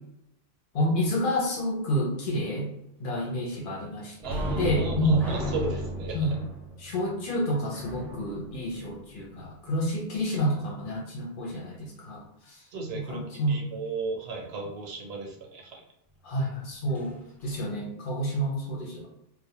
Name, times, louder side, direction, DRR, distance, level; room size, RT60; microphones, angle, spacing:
voice 1, 0.7-2.7 3.0-4.2 4.6-5.2 6.1-6.4 6.8-12.2 12.5-12.6 12.9-13.6 16.2-17.1 17.4-19.1, equal, 60° left, -2 dB, 0.8 m, -29 dB
sound 1, 4.2-9.6 16.9-17.1 17.5-17.6, equal, 5° left, 0.3 m, -35 dB
voice 2, 4.2-6.4 12.7-15.8, right 3 dB, 80° right, 1 dB, 0.9 m, -35 dB
2.2 x 2.1 x 2.8 m, 0.85 s
omnidirectional pair, 1.0 m